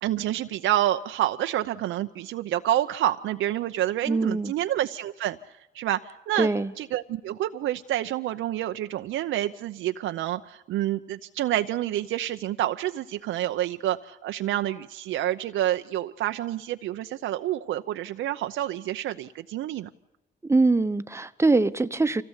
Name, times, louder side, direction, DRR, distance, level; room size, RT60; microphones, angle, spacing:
voice 1, 0.0-5.4 5.7-6.5 6.8-19.9, right 13 dB, 80° right, 0.7 m, -28 dB
voice 2, 4.1-4.5 6.4-6.7 20.4-22.2, right 3 dB, 15° right, 1.0 m, -23 dB
25.0 x 16.5 x 8.2 m
cardioid pair, 90°, 20 cm